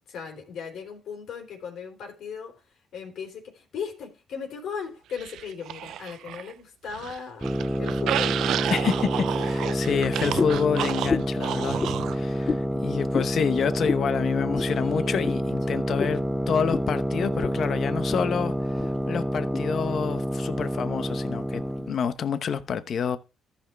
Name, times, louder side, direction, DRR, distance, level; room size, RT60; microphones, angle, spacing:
voice 1, 0.1-8.4 9.1-10.1 14.6-15.8, left 6 dB, 75° left, 3.7 m, -38 dB
sound 1, 5.2-6.5 6.8-12.2, right 12 dB, 80° right, 0.4 m, -31 dB
sound 2, 7.4-22.0, equal, 5° right, 0.6 m, -28 dB
voice 2, 8.7-11.8 12.1-23.2, left 7 dB, 60° left, 0.9 m, -28 dB
sound 3, 10.4-10.6 11.1-11.4 11.8-12.0 12.5-12.7 13.1-13.3 13.9-14.1 14.6-14.7 15.2-15.4 16.0-16.2 16.7-16.9 17.4-17.6 17.9-18.3 18.8-18.9 19.5-19.6, left 4 dB, 35° left, 0.5 m, -28 dB
14.0 x 6.0 x 3.4 m
cardioid pair, 90°, 0 cm